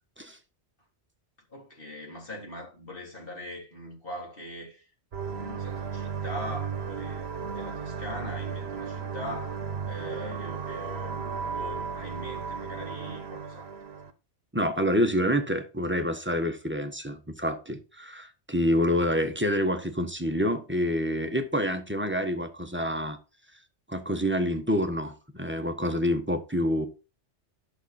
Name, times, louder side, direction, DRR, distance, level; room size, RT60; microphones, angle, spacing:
voice 1, 1.5-4.9 5.3-13.7, left 1 dB, 50° left, 3.8 m, -41 dB
sound 1, 5.1-14.1, right 6 dB, 65° right, 1.3 m, -35 dB
voice 2, 14.5-23.2 23.9-26.9, equal, 10° right, 1.2 m, -27 dB
11.0 x 6.5 x 4.3 m
omnidirectional pair, 1.2 m